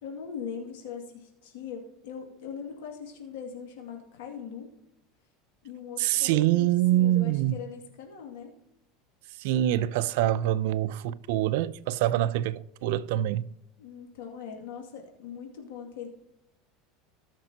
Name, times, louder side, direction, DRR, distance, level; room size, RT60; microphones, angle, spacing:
voice 1, 0.0-4.7 5.6-8.5 13.8-16.1, left 7 dB, 85° left, 2.3 m, -41 dB
voice 2, 6.0-7.6 9.4-13.4, right 13 dB, 75° right, 0.5 m, -25 dB
18.0 x 6.0 x 2.9 m
supercardioid pair, 140°, 0 cm